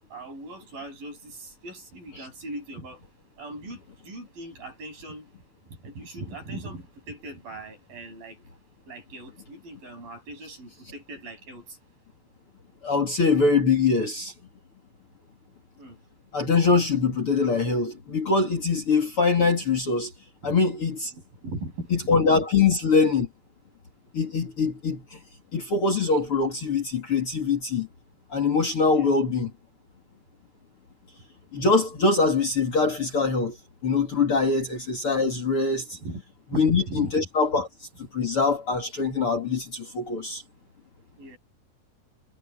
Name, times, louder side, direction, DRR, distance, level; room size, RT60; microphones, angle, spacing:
voice 1, 0.1-3.1 3.4-5.3 5.7-8.4 8.9-11.8 15.8-16.0 20.4-20.5 21.4-22.3 28.9-29.1 34.6-34.7 36.0-36.2 36.5-37.3 37.6-37.7 41.2-41.4, right 2 dB, 60° right, 9.9 m, -39 dB
voice 2, 12.8-14.3 16.3-20.1 20.4-21.1 21.9-23.3 24.1-25.2 25.5-27.9 28.3-29.5 31.5-33.6 33.8-36.0 36.5-37.7 38.1-40.4, left 4 dB, 40° left, 3.0 m, -23 dB
omnidirectional pair, 4.5 m